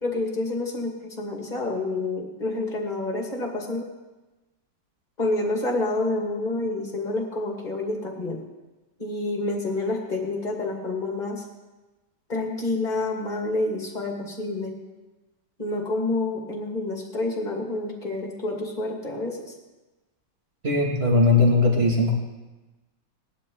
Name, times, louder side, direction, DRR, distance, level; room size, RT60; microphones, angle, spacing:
voice 1, 0.0-3.9 5.2-8.4 9.0-11.4 12.3-14.7 15.6-19.5, left 2 dB, 25° left, 1 dB, 2.4 m, -28 dB
voice 2, 20.6-22.1, left 2 dB, 30° right, -2 dB, 2.7 m, -19 dB
19.0 x 11.5 x 4.0 m, 1.1 s
omnidirectional pair, 2.1 m